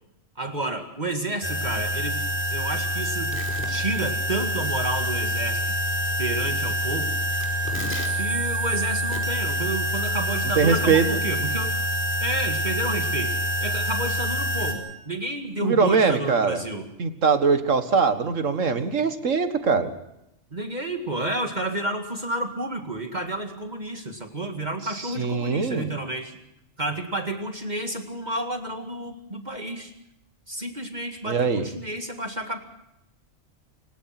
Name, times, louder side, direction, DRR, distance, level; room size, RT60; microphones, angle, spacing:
voice 1, 0.4-2.2 2.5-5.6 6.2-7.1 8.1-11.8 12.2-13.3 13.6-16.9 20.5-26.4 26.8-29.9 30.5-32.6, right 1 dB, 35° right, 6 dB, 2.2 m, -30 dB
sound 1, 1.4-14.7, equal, 10° left, 4.7 m, -26 dB
voice 2, 10.6-11.1 15.6-16.6 17.0-19.9 25.0-25.9 31.3-31.7, right 5 dB, 70° right, 10 dB, 2.1 m, -22 dB
29.0 x 17.5 x 6.0 m, 0.85 s
omnidirectional pair, 1.4 m